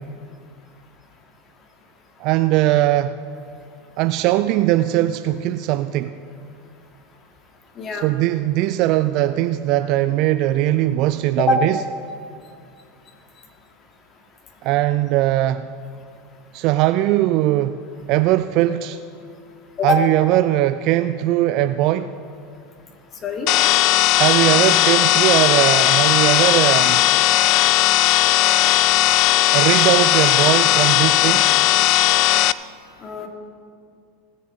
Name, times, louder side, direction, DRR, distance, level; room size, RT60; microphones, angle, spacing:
voice 1, 2.2-3.2 4.0-6.2 7.9-11.8 14.6-15.7 16.5-17.8 18.1-19.0 19.8-22.1 24.2-27.0 29.5-31.5, right 14 dB, 50° right, 11 dB, 0.3 m, -19 dB
voice 2, 7.8-8.1 11.5-11.6 19.8-20.0 23.2-23.5 33.0-33.3, left 2 dB, 35° left, 3 dB, 1.9 m, -22 dB
sound 1, 23.5-32.5, left 16 dB, 50° left, 0.3 m, -16 dB
18.5 x 6.7 x 5.1 m, 2.3 s
hypercardioid pair, 85°, 0 cm